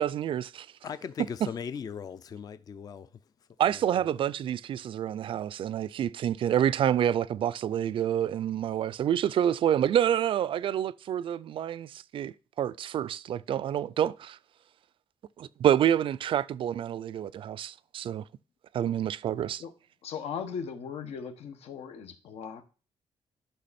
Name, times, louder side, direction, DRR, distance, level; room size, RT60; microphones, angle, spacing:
voice 1, 0.0-0.7 3.6-14.4 15.4-18.2 18.7-19.6, right 10 dB, 55° right, 0.4 m, -28 dB
voice 2, 0.8-3.1 3.7-4.1, left 7 dB, 40° left, 0.5 m, -39 dB
voice 3, 20.0-22.6, left 6 dB, 80° left, 1.4 m, -38 dB
11.5 x 5.9 x 4.2 m
wide cardioid pair, 165°, 10 cm